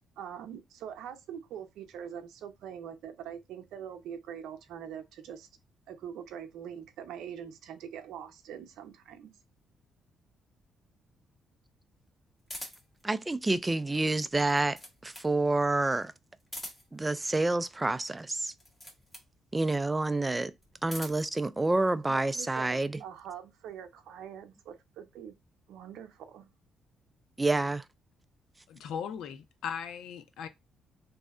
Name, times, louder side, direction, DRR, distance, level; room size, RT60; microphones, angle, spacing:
voice 1, 0.2-5.5 5.9-9.3 22.1-25.3 25.7-26.5, right 8 dB, 85° right, 0.6 m, -43 dB
sound 1, 12.5-13.0 14.3-15.3 16.4-17.0 18.5-19.3 20.6-21.3, equal, 10° left, 1.4 m, -44 dB
voice 2, 13.0-16.1 16.9-18.5 19.5-20.5 20.8-23.0 27.4-27.8, right 2 dB, 15° right, 0.4 m, -28 dB
voice 3, 28.7-30.5, left 7 dB, 80° left, 0.5 m, -38 dB
3.1 x 2.7 x 3.7 m
cardioid pair, 90°, 0 cm